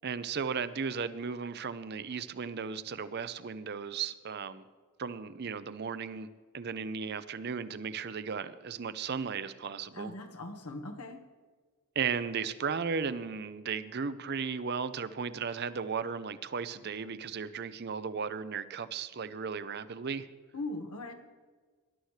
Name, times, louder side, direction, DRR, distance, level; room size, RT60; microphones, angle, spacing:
voice 1, 0.0-4.6 5.0-6.3 6.5-10.1 12.0-20.3, right 6 dB, 45° right, 13 dB, 0.5 m, -35 dB
voice 2, 9.9-11.2 20.5-21.1, left 2 dB, 90° left, 3 dB, 1.5 m, -40 dB
19.5 x 11.5 x 3.3 m, 1.5 s
head